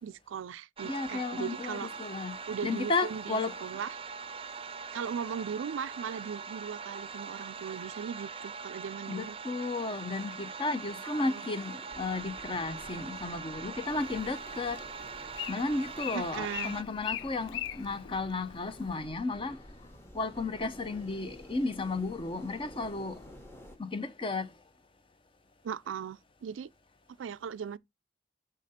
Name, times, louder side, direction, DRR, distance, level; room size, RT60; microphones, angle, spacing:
voice 1, 0.0-1.9 2.5-4.0 4.9-9.4 11.0-11.4 16.1-16.7 25.6-26.7 27.2-27.8, right 7 dB, 85° right, 0.4 m, -38 dB
voice 2, 0.8-3.5 9.1-15.0 15.5-19.6 20.1-23.3 23.8-24.5, left 3 dB, 30° left, 0.6 m, -34 dB
sound 1, 0.8-16.8, right 5 dB, 30° right, 0.5 m, -42 dB
sound 2, 11.9-23.8, left 1 dB, 15° left, 1.1 m, -51 dB
Bird, 13.8-19.0, left 11 dB, 70° left, 0.4 m, -42 dB
6.5 x 5.0 x 4.1 m
head